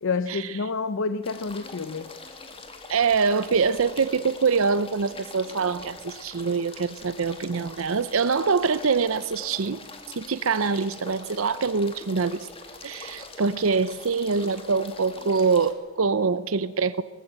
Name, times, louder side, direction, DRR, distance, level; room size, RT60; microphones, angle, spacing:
voice 1, 0.0-2.1, left 4 dB, 65° left, 0.6 m, -29 dB
sound 1, 1.2-15.7, left 3 dB, 25° left, 2.3 m, -43 dB
voice 2, 2.9-9.8 10.2-12.5 12.8-17.0, right 5 dB, 70° right, 0.7 m, -24 dB
20.0 x 15.5 x 8.8 m
head